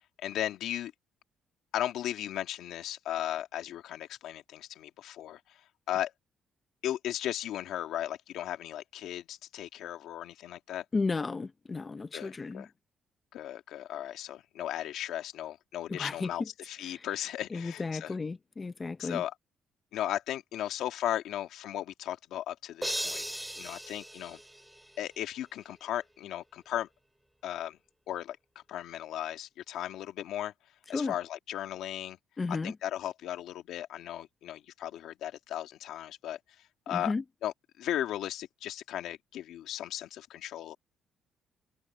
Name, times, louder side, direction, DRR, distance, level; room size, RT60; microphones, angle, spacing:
voice 1, 0.2-0.9 1.7-5.4 5.9-6.1 6.8-10.8 12.1-12.7 13.3-18.1 19.0-19.3 19.9-23.2 23.6-24.4 25.0-26.9 27.4-27.8 28.1-28.4 28.7-30.5 30.9-32.2 32.5-36.4 36.9-37.1 37.4-40.8, left 12 dB, 80° left, 2.1 m, -36 dB
voice 2, 10.9-12.7 15.9-16.5 16.8-17.1 17.5-19.2 30.9-31.1 32.4-32.8 36.9-37.2, left 4 dB, 25° left, 0.8 m, -33 dB
sound 1, 22.8-25.1, right 1 dB, 5° right, 2.3 m, -37 dB
cardioid pair, 110°, 0 cm